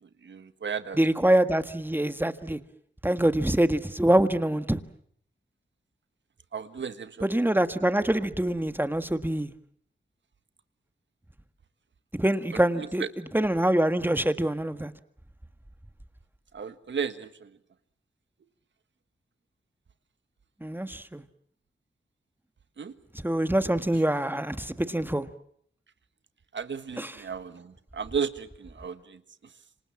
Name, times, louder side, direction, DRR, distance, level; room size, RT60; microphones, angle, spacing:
voice 1, 0.0-1.0 6.5-7.4 12.5-13.1 16.5-17.6 22.8-22.9 26.5-29.2, right 6 dB, 70° right, 11 dB, 1.6 m, -34 dB
voice 2, 1.0-2.6 3.0-4.8 7.2-9.5 12.2-13.0 13.3-14.9 20.6-21.2 23.2-25.3 27.0-27.1, right 1 dB, 10° right, 10 dB, 1.6 m, -25 dB
27.0 x 26.0 x 7.4 m, 0.66 s
cardioid pair, 65°, 20 cm